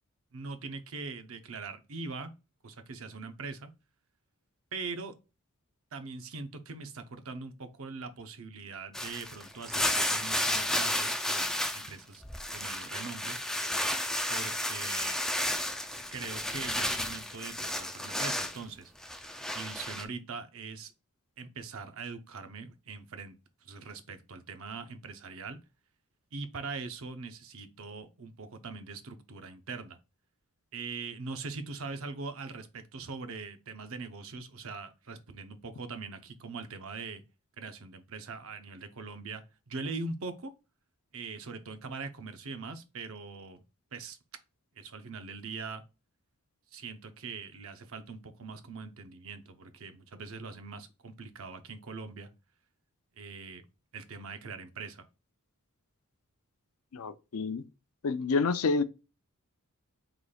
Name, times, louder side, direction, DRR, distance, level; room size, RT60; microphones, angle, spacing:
voice 1, 0.3-2.3 2.6-3.7 4.7-5.1 5.9-12.2 12.5-13.4 14.3-15.2 16.1-18.9 19.5-20.9 21.4-23.3 23.6-25.6 26.3-30.0 30.7-37.2 37.6-40.5 41.1-43.6 43.9-44.2 44.8-45.8 46.7-52.3 53.2-53.6 53.9-55.0, right 4 dB, 65° right, 0.7 m, -42 dB
sound 1, 8.9-11.9 12.2-18.6 19.0-20.0, left 1 dB, 5° left, 0.3 m, -32 dB
voice 2, 56.9-57.6 58.0-58.8, left 4 dB, 70° left, 0.5 m, -28 dB
5.0 x 3.9 x 2.3 m
head